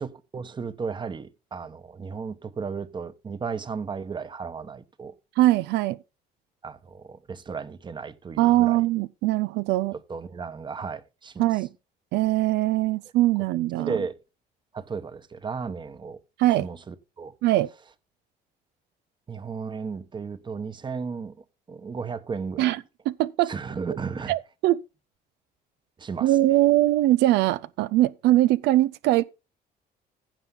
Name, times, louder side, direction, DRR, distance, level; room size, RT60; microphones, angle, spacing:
voice 1, 0.0-5.2 6.6-8.8 10.1-11.5 13.8-14.1 14.7-16.2 16.6-17.3 19.3-21.4 21.7-22.7 23.5-24.3 26.0-26.4, right 5 dB, 25° right, 1.1 m, -34 dB
voice 2, 5.4-6.0 8.4-9.9 11.4-11.7 12.1-14.0 16.4-16.7 17.4-17.7 22.6-22.8 23.1-23.5 24.3-24.8 26.2-29.2, right 16 dB, 85° right, 0.5 m, -21 dB
15.5 x 5.5 x 3.9 m
cardioid pair, 110°, 17 cm